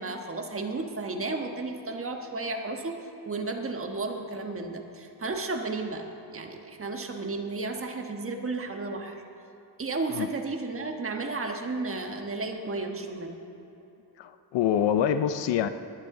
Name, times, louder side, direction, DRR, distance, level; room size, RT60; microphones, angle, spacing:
voice 1, 0.0-9.2 9.8-13.4, right 3 dB, 30° right, 4 dB, 1.4 m, -33 dB
voice 2, 14.2-15.7, left 9 dB, 80° left, 11 dB, 0.6 m, -25 dB
19.5 x 9.8 x 3.8 m, 2.9 s
cardioid pair, 100°, 43 cm